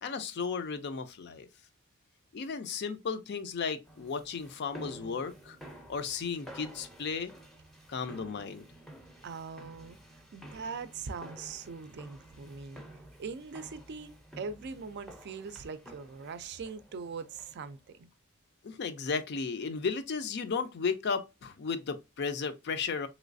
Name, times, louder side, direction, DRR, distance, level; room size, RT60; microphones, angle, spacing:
voice 1, 0.0-1.5 2.3-5.6 5.9-7.3 7.9-8.6 18.6-23.1, left 5 dB, 50° left, 0.4 m, -34 dB
sound 1, 3.9-17.7, right 1 dB, ahead, 0.5 m, -51 dB
voice 2, 9.2-10.0 10.3-12.8 13.2-18.1, right 5 dB, 55° right, 0.4 m, -41 dB
3.2 x 3.0 x 2.5 m
head